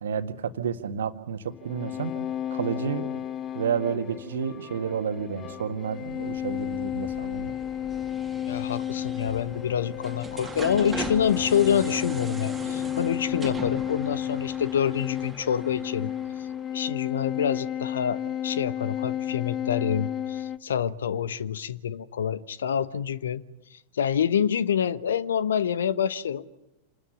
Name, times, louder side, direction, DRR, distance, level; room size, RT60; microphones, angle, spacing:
voice 1, 0.0-2.1 2.5-3.1 3.5-7.5, right 7 dB, 65° right, 8 dB, 1.8 m, -30 dB
sound 1, 1.5-20.6, left 10 dB, 25° left, 0.8 m, -32 dB
sound 2, 5.9-16.7, right 3 dB, 10° right, 2.7 m, -41 dB
voice 2, 8.5-16.1 16.7-23.4 23.7-26.6, left 8 dB, 65° left, 16 dB, 1.1 m, -27 dB
28.0 x 20.5 x 6.8 m, 0.95 s
figure-of-eight pair, 90°, 0 cm